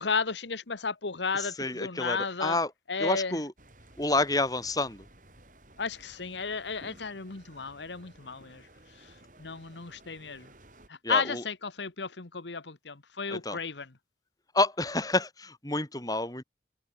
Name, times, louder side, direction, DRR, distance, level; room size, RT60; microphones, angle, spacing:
voice 1, 0.0-2.6 2.9-3.4 5.8-8.7 9.0-9.1 9.4-10.5 10.9-13.9, left 5 dB, 85° left, 1.4 m, -33 dB
voice 2, 1.3-2.7 3.0-3.5 4.0-5.1 11.0-11.4 13.3-13.6 14.5-16.4, left 2 dB, 20° left, 4.3 m, -29 dB
sound 1, 3.6-10.9, right 1 dB, 45° right, 7.4 m, -56 dB
head